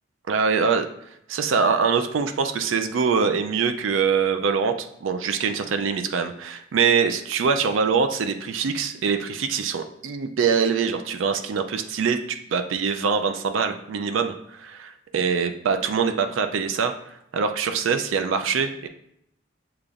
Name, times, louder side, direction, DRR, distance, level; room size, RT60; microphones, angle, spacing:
voice 1, 0.3-0.9 1.3-16.9 17.3-18.9, right 6 dB, 90° right, 7 dB, 0.4 m, -24 dB
6.7 x 2.9 x 2.5 m, 0.76 s
head